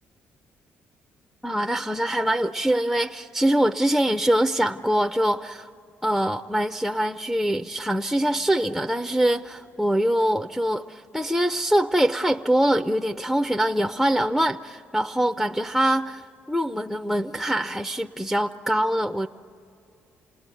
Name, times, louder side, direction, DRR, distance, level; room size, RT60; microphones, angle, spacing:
voice 1, 1.4-5.7 6.0-19.3, right 1 dB, ahead, 6 dB, 0.5 m, -24 dB
28.5 x 20.0 x 9.1 m, 2.7 s
cardioid pair, 115°, 4 cm